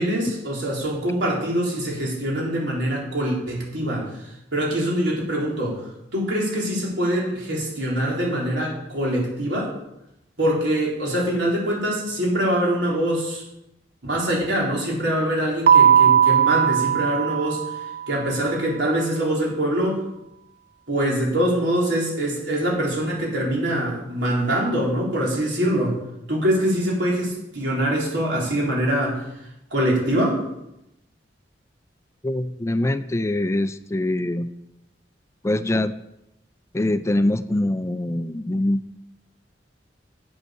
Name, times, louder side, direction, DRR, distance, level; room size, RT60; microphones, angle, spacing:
voice 1, 0.0-4.1 4.5-9.7 10.4-13.4 14.0-17.6 18.1-20.0 20.9-26.0 26.3-29.2 29.7-30.4, right 1 dB, 85° right, -3 dB, 3.9 m, -24 dB
Keyboard (musical), 15.7-18.2, right 8 dB, 60° right, 0.4 m, -18 dB
voice 2, 32.2-34.5 35.4-35.9 36.7-38.8, left 1 dB, 15° left, 12 dB, 0.4 m, -23 dB
8.1 x 8.1 x 6.5 m, 0.85 s
head